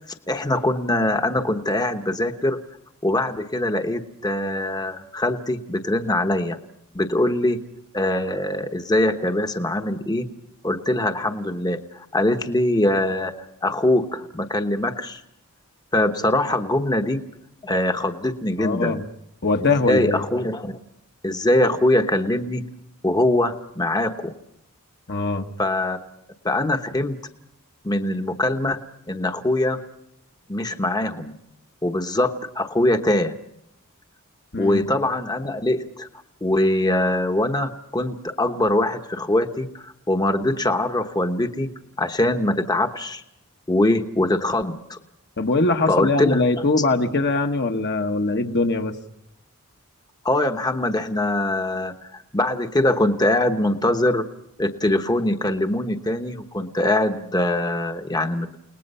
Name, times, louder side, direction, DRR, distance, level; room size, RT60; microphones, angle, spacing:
voice 1, 0.3-2.6 3.0-6.6 6.9-7.6 7.9-10.3 10.6-13.3 13.6-15.2 15.9-17.2 17.6-19.0 19.6-20.7 21.2-22.6 23.0-24.3 25.6-26.0 26.4-27.2 27.8-28.8 29.1-29.8 30.5-31.4 31.8-33.3 34.6-36.1 36.4-41.7 42.0-43.2 43.7-45.0 45.9-46.4 50.2-54.3 54.6-58.6, left 1 dB, 20° left, 6 dB, 1.1 m, -22 dB
voice 2, 18.6-19.0 19.4-20.2 25.1-25.5 34.5-34.8 45.4-48.9, left 3 dB, 50° left, 4 dB, 1.3 m, -22 dB
30.0 x 19.5 x 5.5 m, 0.78 s
head